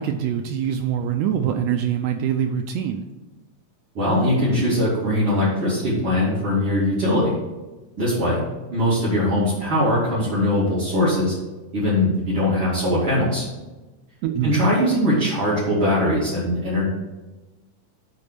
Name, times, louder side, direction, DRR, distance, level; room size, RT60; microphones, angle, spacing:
voice 1, 0.0-3.0 14.2-14.5, right 9 dB, 80° right, 5 dB, 1.6 m, -24 dB
voice 2, 3.9-7.3 8.0-8.4 8.7-11.3 11.7-13.4 14.4-16.9, left 1 dB, 45° right, -10 dB, 3.3 m, -21 dB
8.5 x 4.1 x 6.7 m, 1.1 s
omnidirectional pair, 3.5 m